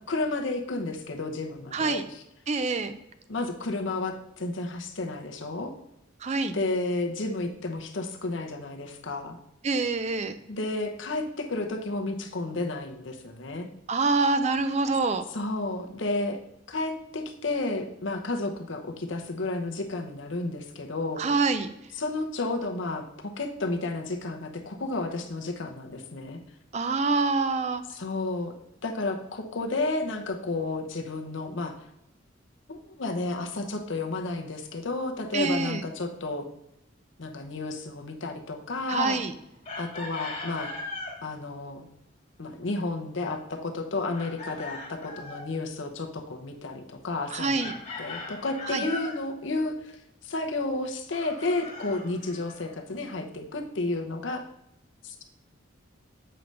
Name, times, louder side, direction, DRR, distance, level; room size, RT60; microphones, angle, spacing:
voice 1, 0.1-2.2 3.3-5.7 6.5-9.4 10.5-13.7 15.3-16.4 16.7-21.2 21.9-26.4 27.9-28.5 28.8-31.7 32.7-36.4 37.2-39.2 39.8-40.7 41.2-41.8 42.4-54.4 55.0-55.2, left 2 dB, 70° left, 4 dB, 0.8 m, -32 dB
voice 2, 1.7-2.0 2.5-3.0 6.2-6.6 9.6-10.4 13.9-15.3 21.2-21.7 26.7-27.8 35.3-35.8 38.9-39.3 47.3-47.7 48.7-48.8, right 3 dB, 35° right, 10 dB, 0.4 m, -26 dB
Chicken rooster, 39.6-41.2 44.1-45.5 47.6-49.2 51.1-52.7, left 3 dB, 30° left, 1.7 m, -39 dB
7.7 x 5.3 x 3.3 m, 0.82 s
head